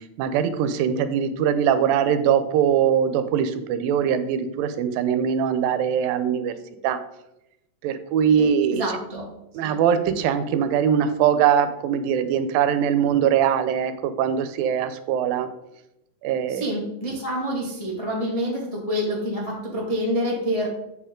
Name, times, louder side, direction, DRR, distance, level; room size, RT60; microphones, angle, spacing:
voice 1, 0.2-6.5 6.8-7.0 7.8-8.8 9.5-15.5 16.2-16.8, right 8 dB, 90° right, 10 dB, 2.5 m, -22 dB
voice 2, 8.4-9.2 9.6-9.7 16.5-20.7, equal, 30° left, -4 dB, 0.6 m, -27 dB
7.9 x 6.9 x 3.7 m, 0.86 s
omnidirectional pair, 4.0 m